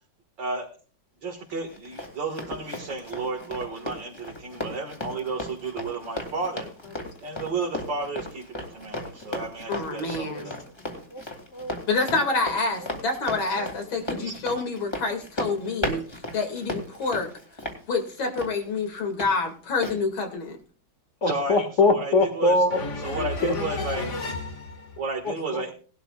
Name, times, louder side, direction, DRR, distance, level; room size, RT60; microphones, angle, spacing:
voice 1, 1.2-6.7 7.2-10.5 14.2-14.3 21.2-22.6 23.0-24.1 25.0-25.7, right 3 dB, 65° right, -2 dB, 2.5 m, -32 dB
Run, 1.5-19.3 19.8-20.0, left 1 dB, 15° left, 2.4 m, -36 dB
voice 2, 9.7-10.5 11.9-17.3 17.9-20.6, left 3 dB, 85° left, 3 dB, 3.1 m, -27 dB
voice 3, 21.2-24.8 25.3-25.6, left 2 dB, 40° left, 6 dB, 2.1 m, -24 dB
19.0 x 12.0 x 2.4 m, 0.40 s
omnidirectional pair, 2.1 m